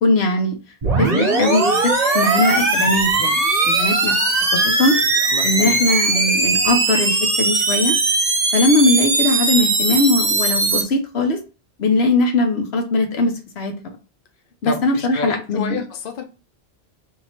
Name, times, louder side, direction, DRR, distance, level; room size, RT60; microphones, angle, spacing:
voice 1, 0.0-0.6 1.0-3.3 3.6-4.2 4.5-5.0 5.4-8.0 8.5-11.4 11.8-13.7 14.6-15.8, left 2 dB, 80° left, 5 dB, 1.1 m, -20 dB
sound 1, 0.8-10.8, right 3 dB, 40° right, 0.8 m, -19 dB
voice 2, 5.3-6.0 14.6-16.2, left 4 dB, 60° left, 5 dB, 0.8 m, -30 dB
3.1 x 2.9 x 4.1 m, 0.32 s
omnidirectional pair, 1.1 m